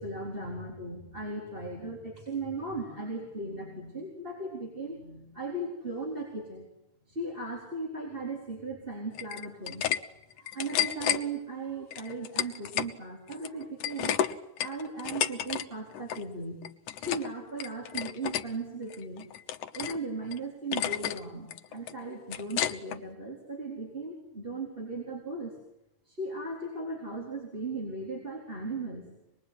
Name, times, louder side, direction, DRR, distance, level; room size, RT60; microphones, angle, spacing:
voice 1, 0.0-6.7 7.1-9.9 10.4-14.2 14.6-16.6 17.0-19.3 19.7-25.6 26.1-29.1, right 2 dB, 15° right, -1 dB, 4.3 m, -37 dB
sound 1, 9.1-10.0 10.3-11.2 11.9-12.9 13.3-15.6 15.9-16.2 16.6-17.3 17.6-18.4 18.9-20.0 20.3-20.4 20.7-21.2 21.5-23.0, left 11 dB, 75° left, 2.5 m, -31 dB
26.0 x 21.0 x 9.6 m, 0.87 s
omnidirectional pair, 3.6 m